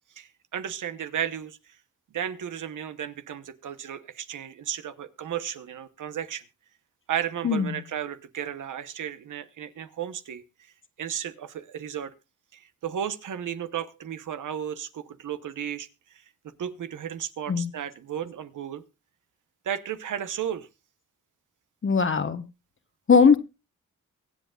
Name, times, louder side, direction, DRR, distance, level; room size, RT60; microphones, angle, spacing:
voice 1, 0.2-1.6 2.1-6.4 7.1-10.4 11.0-12.1 12.5-15.9 16.4-18.8 19.6-20.7, right 9 dB, 80° right, 11 dB, 1.0 m, -34 dB
voice 2, 7.4-7.8 17.5-17.7 21.8-22.4 23.1-23.4, left 5 dB, 40° left, 11 dB, 1.1 m, -20 dB
23.5 x 8.0 x 2.4 m, 0.28 s
cardioid pair, 90°, 30 cm